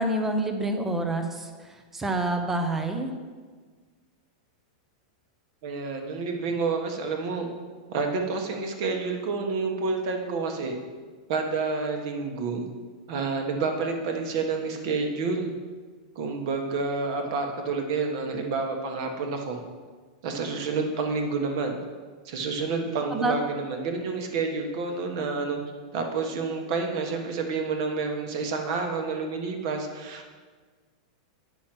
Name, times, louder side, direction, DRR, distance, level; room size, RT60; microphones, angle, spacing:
voice 1, 0.0-3.1 23.1-23.3, right 2 dB, 5° right, 5 dB, 0.7 m, -27 dB
voice 2, 5.6-7.5 7.9-10.7 11.3-12.7 13.1-15.5 16.1-19.6 20.2-21.8 22.2-25.6 25.9-30.3, right 4 dB, 40° right, 4 dB, 1.3 m, -29 dB
9.1 x 6.2 x 6.0 m, 1.5 s
supercardioid pair, 175°, 4 cm